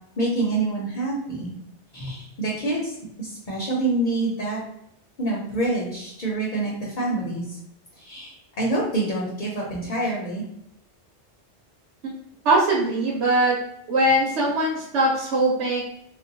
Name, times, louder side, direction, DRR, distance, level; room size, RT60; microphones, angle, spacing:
voice 1, 0.2-1.5 1.9-4.6 5.2-7.6 8.0-10.4, right 2 dB, 50° left, -4 dB, 0.8 m, -27 dB
voice 2, 12.4-13.5 13.9-15.8, right 1 dB, 75° right, -4 dB, 1.0 m, -21 dB
2.4 x 2.2 x 3.9 m, 0.78 s
omnidirectional pair, 1.2 m